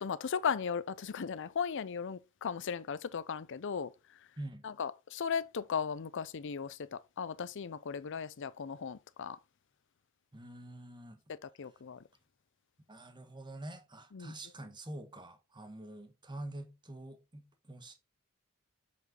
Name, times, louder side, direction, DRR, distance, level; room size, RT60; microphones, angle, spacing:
voice 1, 0.0-3.9 4.6-9.4 11.3-12.0 14.1-14.3, left 6 dB, 60° left, 0.5 m, -37 dB
voice 2, 4.4-4.7 10.3-11.2 12.9-17.9, right 1 dB, 20° right, 1.4 m, -46 dB
8.0 x 5.1 x 3.9 m
head